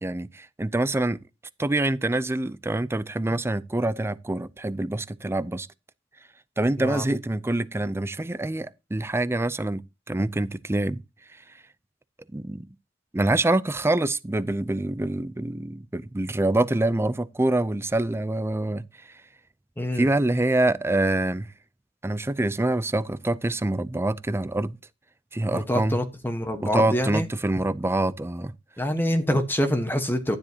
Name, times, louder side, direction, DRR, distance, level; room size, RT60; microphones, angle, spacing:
voice 1, 0.0-1.2 1.6-5.7 6.6-9.8 10.1-11.0 12.3-12.6 13.1-18.8 20.0-21.5 22.0-24.8 25.3-26.0 26.6-28.5 29.3-29.4, right 2 dB, 15° right, 0.5 m, -25 dB
voice 2, 19.8-20.1 25.5-27.3 28.8-30.4, equal, 10° left, 1.3 m, -26 dB
12.5 x 10.0 x 2.9 m
head